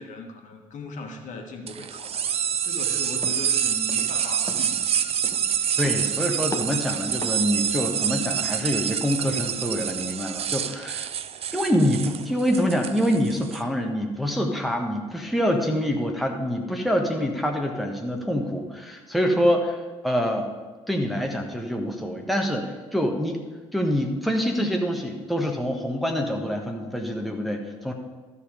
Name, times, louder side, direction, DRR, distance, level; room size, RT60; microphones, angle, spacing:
voice 1, 0.0-2.3 2.6-5.0, left 3 dB, 50° left, 3 dB, 1.5 m, -38 dB
sound 1, 1.7-13.6, right 9 dB, 40° right, 0.5 m, -27 dB
sound 2, 3.2-3.5 3.9-4.2 4.5-4.8 5.2-5.6 5.8-6.2 6.5-6.9 7.2-7.5, left 2 dB, 20° left, 1.1 m, -37 dB
voice 2, 5.8-11.1 11.5-20.5 20.9-23.4 23.7-27.9, equal, ahead, 2 dB, 1.3 m, -25 dB
13.0 x 5.6 x 5.0 m, 1.3 s
figure-of-eight pair, 45°, 17 cm